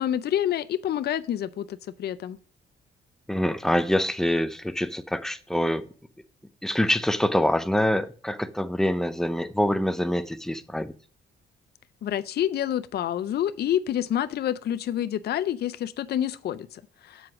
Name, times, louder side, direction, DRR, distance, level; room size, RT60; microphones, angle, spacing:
voice 1, 0.0-2.4 12.0-17.3, left 11 dB, 55° left, 0.5 m, -28 dB
voice 2, 3.3-5.9 6.6-10.9, left 1 dB, ahead, 0.6 m, -25 dB
7.8 x 4.7 x 4.8 m
cardioid pair, 90°, 20 cm